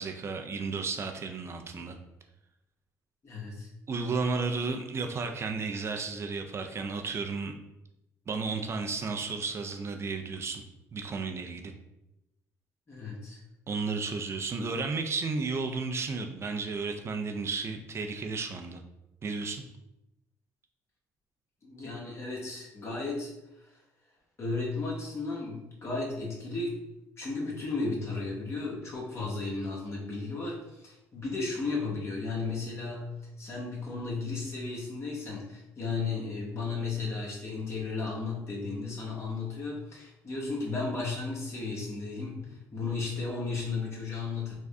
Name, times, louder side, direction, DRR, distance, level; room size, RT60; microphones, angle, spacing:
voice 1, 0.0-2.0 3.9-7.5 8.3-10.6 10.9-11.7 13.7-18.8 19.2-19.6, right 4 dB, 40° right, 4 dB, 0.4 m, -33 dB
voice 2, 3.2-3.7 12.9-13.4 21.6-23.3 24.4-26.8 27.2-33.1 33.4-44.5, left 3 dB, 40° left, -3 dB, 1.2 m, -34 dB
3.5 x 2.1 x 3.6 m, 0.90 s
supercardioid pair, 80°, 7 cm